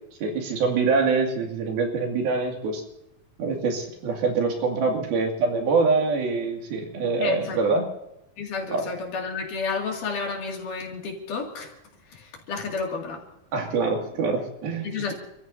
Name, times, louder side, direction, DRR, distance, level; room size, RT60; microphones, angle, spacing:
voice 1, 0.2-2.8 3.4-7.8 8.7-8.9 13.5-15.1, right 4 dB, 85° right, 1 dB, 4.3 m, -25 dB
voice 2, 7.2-7.6 8.4-11.7 12.1-13.2 14.8-15.1, left 4 dB, 60° left, 0 dB, 3.8 m, -31 dB
29.0 x 14.5 x 2.7 m, 0.83 s
omnidirectional pair, 4.2 m